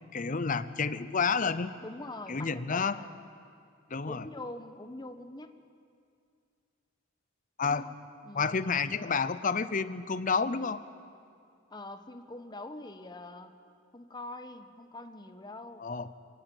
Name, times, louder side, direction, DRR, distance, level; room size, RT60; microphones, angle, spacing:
voice 1, 0.1-1.7 2.3-3.0 3.9-4.2 7.6-7.9 8.3-10.8 15.8-16.1, left 5 dB, 40° left, 13 dB, 0.7 m, -30 dB
voice 2, 1.8-3.1 4.1-5.6 7.6-7.9 8.2-8.6 11.7-13.5 13.9-15.9, left 2 dB, 20° left, 8 dB, 1.0 m, -44 dB
23.5 x 18.0 x 7.9 m, 2.3 s
head